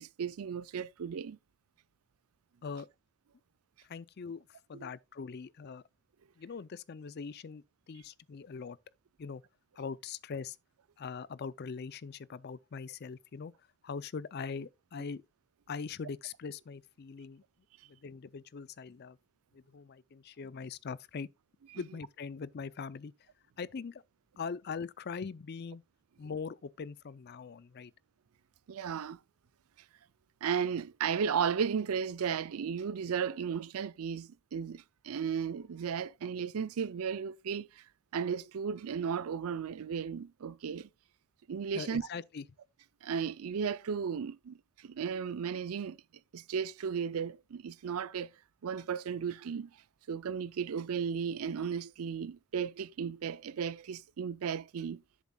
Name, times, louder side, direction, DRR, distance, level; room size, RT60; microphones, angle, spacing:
voice 1, 0.0-1.4 4.8-4.9 28.7-29.2 30.4-37.8 38.1-40.9 41.5-42.1 43.0-46.0 46.3-48.3 48.6-49.7 50.1-55.0, right 7 dB, 75° right, 0.4 m, -35 dB
voice 2, 3.8-5.8 6.4-8.8 9.2-9.4 9.7-10.6 11.0-15.2 15.7-17.4 17.9-19.2 19.5-21.3 21.7-23.3 23.6-24.0 24.4-25.8 26.2-27.9 41.7-42.4, left 5 dB, 45° left, 0.4 m, -42 dB
11.0 x 7.2 x 2.3 m
head